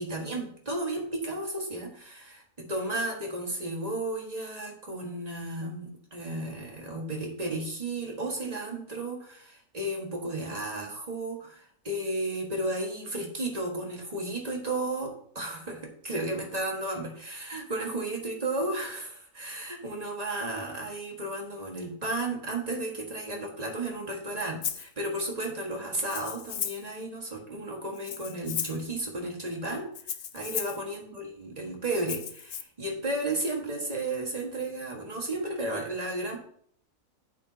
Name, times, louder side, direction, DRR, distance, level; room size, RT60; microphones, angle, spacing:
voice 1, 0.0-29.9 30.3-36.4, right 2 dB, 25° right, 0 dB, 1.7 m, -33 dB
Rattle (instrument), 24.6-24.9 26.0-26.9 27.9-28.9 29.9-30.8 32.0-32.6, left 9 dB, 60° left, 0.7 m, -35 dB
9.5 x 8.3 x 2.8 m, 0.62 s
omnidirectional pair, 1.5 m